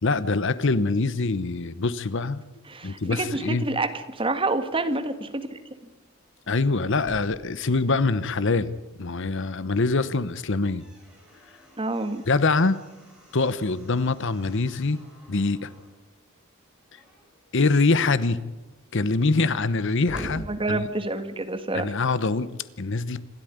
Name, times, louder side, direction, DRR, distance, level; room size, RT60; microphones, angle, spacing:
voice 1, 0.0-2.4 2.8-3.7 6.5-10.8 12.3-12.8 13.3-15.0 15.3-15.7 17.5-18.4 18.9-20.9 21.7-22.5 22.8-23.2, left 3 dB, 60° left, 15 dB, 1.0 m, -24 dB
voice 2, 2.7-5.6 11.8-12.2 20.5-21.9, right 2 dB, 25° right, 9 dB, 1.7 m, -28 dB
Slam, 6.9-9.4 9.8-9.9 10.3-16.0 16.8-17.4 17.9-18.0 18.2-21.4, equal, 5° right, 7.1 m, -46 dB
27.0 x 12.5 x 9.4 m, 1.1 s
head